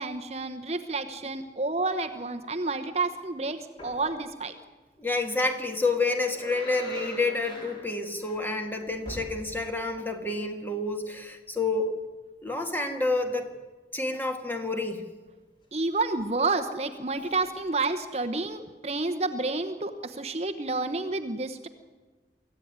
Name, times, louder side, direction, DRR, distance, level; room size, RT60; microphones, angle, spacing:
voice 1, 0.0-4.5 15.7-21.7, right 3 dB, 35° right, 7 dB, 1.0 m, -30 dB
sound 1, 3.8-4.1 5.7-9.8 10.2-10.3 16.0-16.5 17.1-17.5 18.4-18.5, left 1 dB, 30° left, 4.6 m, -44 dB
voice 2, 5.0-11.9 12.4-13.5 13.9-15.1, left 3 dB, 10° left, 4 dB, 2.0 m, -29 dB
24.0 x 15.0 x 9.5 m, 1.3 s
head